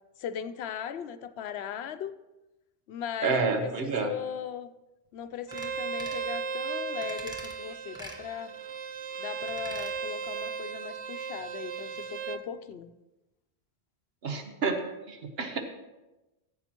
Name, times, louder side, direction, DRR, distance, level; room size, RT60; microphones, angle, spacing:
voice 1, 0.2-2.2 2.9-4.7 5.1-8.5 9.2-12.9, left 9 dB, 85° left, 11 dB, 0.9 m, -38 dB
voice 2, 3.2-4.1 14.2-14.8 15.1-15.6, right 4 dB, 70° right, 5 dB, 1.2 m, -29 dB
sound 1, 5.5-5.7 6.0-6.3 7.0-7.5 7.9-8.2 9.4-9.9 10.3-10.4, equal, 5° right, 1.2 m, -45 dB
Bowed string instrument, 5.5-12.4, right 6 dB, 50° right, 0.4 m, -36 dB
15.5 x 8.0 x 2.9 m, 1.0 s
omnidirectional pair, 1.0 m